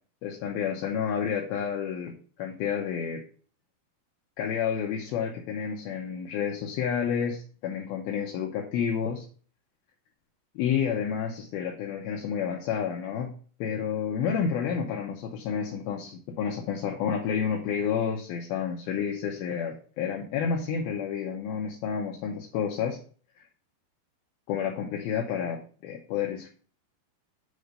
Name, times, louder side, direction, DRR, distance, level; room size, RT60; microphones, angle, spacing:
voice 1, 0.2-3.2 4.4-9.3 10.6-13.4 13.6-23.0 24.5-26.5, left 7 dB, 75° left, 0 dB, 2.3 m, -30 dB
8.1 x 3.8 x 5.1 m, 0.42 s
omnidirectional pair, 5.2 m